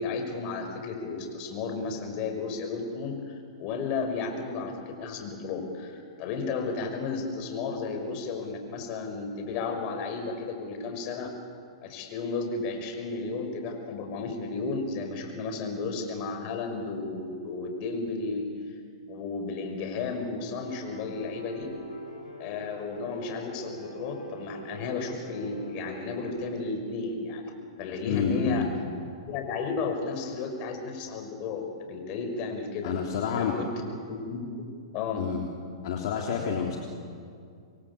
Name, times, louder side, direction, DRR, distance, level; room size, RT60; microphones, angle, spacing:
voice 1, 0.0-11.3 11.8-18.7 19.1-21.7 22.4-28.6 29.2-32.9 33.4-33.7 34.1-34.7 34.9-35.2, left 4 dB, 40° left, 5 dB, 5.7 m, -33 dB
Piano, 20.7-26.3, left 1 dB, 85° left, 7.9 m, -44 dB
voice 2, 28.1-28.7 32.8-33.6 35.2-35.4 35.8-36.8, left 7 dB, 60° left, 0 dB, 3.2 m, -28 dB
27.0 x 22.5 x 8.5 m, 2.3 s
hypercardioid pair, 120°, 3 cm